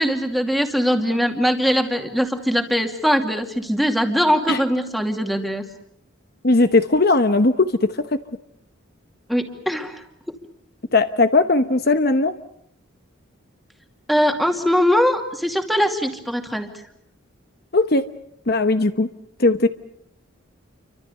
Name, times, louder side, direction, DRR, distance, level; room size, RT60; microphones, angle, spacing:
voice 1, 0.0-5.6 9.3-10.0 14.1-16.7, equal, ahead, 5 dB, 2.5 m, -21 dB
voice 2, 6.4-8.0 10.9-12.3 17.7-18.1 18.5-19.1 19.4-19.7, left 2 dB, 50° left, 10 dB, 1.0 m, -18 dB
29.5 x 25.0 x 6.8 m, 0.74 s
head